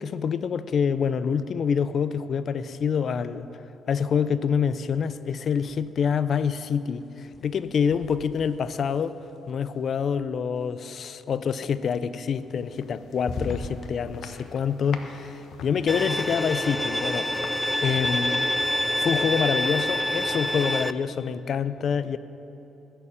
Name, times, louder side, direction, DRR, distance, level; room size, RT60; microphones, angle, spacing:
voice 1, 0.0-3.5 3.9-9.2 9.5-17.5 17.8-18.5 19.0-22.2, left 7 dB, 55° left, 0.6 m, -26 dB
sound 1, 5.5-6.3 6.5-10.6 12.3-12.9 13.1-13.9, left 3 dB, 35° left, 1.3 m, -40 dB
sound 2, 12.4-20.2, left 5 dB, 70° left, 1.1 m, -46 dB
Bowed string instrument, 15.9-20.9, left 1 dB, 5° left, 0.5 m, -26 dB
19.0 x 6.9 x 8.6 m
cardioid pair, 90°, 0 cm